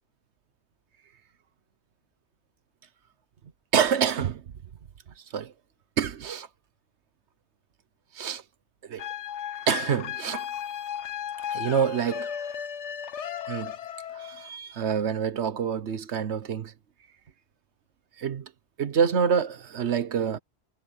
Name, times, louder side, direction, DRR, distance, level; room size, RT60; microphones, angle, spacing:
voice 1, 3.7-4.4 5.3-5.5 6.0-6.5 8.1-8.4 8.8-9.1 9.7-10.5 11.5-12.3 13.5-13.7 14.1-16.7 18.2-18.5 18.8-20.4, right 7 dB, 75° right, 1.2 m, -27 dB
sound 1, 9.0-14.5, left 9 dB, 85° left, 1.2 m, -35 dB
omnidirectional pair, 1.2 m